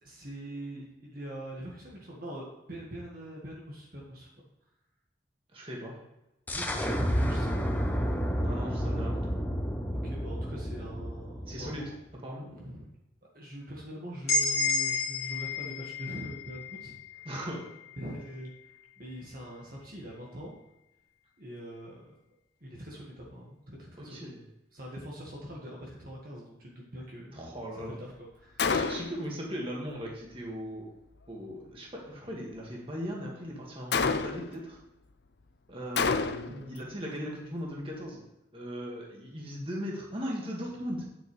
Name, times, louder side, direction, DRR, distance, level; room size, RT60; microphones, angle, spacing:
voice 1, 0.0-4.3 6.5-8.0 9.9-11.9 12.4-12.9 13.3-17.3 18.0-20.5 21.4-22.1 22.6-24.2 24.7-27.4 27.7-28.7 36.4-37.0, equal, 50° right, -3 dB, 1.7 m, -43 dB
voice 2, 5.5-6.0 8.4-9.2 11.5-11.8 12.2-12.5 17.3-17.6 24.0-24.4 27.3-28.0 28.7-30.9 31.3-34.8 35.7-38.2 38.5-41.0, equal, 30° right, -2 dB, 2.0 m, -38 dB
sound 1, 6.5-12.0, equal, 10° left, 0.8 m, -31 dB
sound 2, 14.3-18.1, left 3 dB, 35° left, 2.7 m, -31 dB
Gunshot gunfire, 28.6-29.3 33.9-34.6 36.0-36.6, left 5 dB, 60° left, 0.5 m, -28 dB
9.6 x 8.0 x 3.3 m, 0.92 s
head